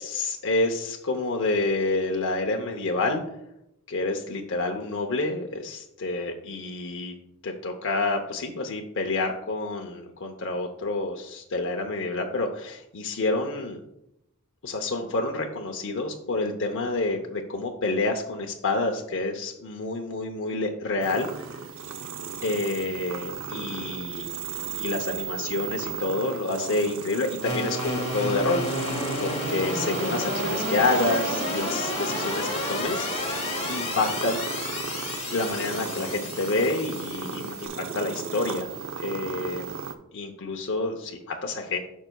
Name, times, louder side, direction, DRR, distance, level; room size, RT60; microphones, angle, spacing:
voice 1, 0.0-3.2 3.9-7.1 7.4-13.8 14.6-21.5 22.4-24.3 24.7-33.4 33.7-34.4 35.3-39.8 40.1-41.8, left 2 dB, 55° left, 2 dB, 0.7 m, -28 dB
sound 1, 21.0-40.0, right 5 dB, 60° right, 0.7 m, -35 dB
sound 2, 27.4-37.7, left 1 dB, 30° left, 1.8 m, -31 dB
13.5 x 5.4 x 2.3 m, 0.83 s
head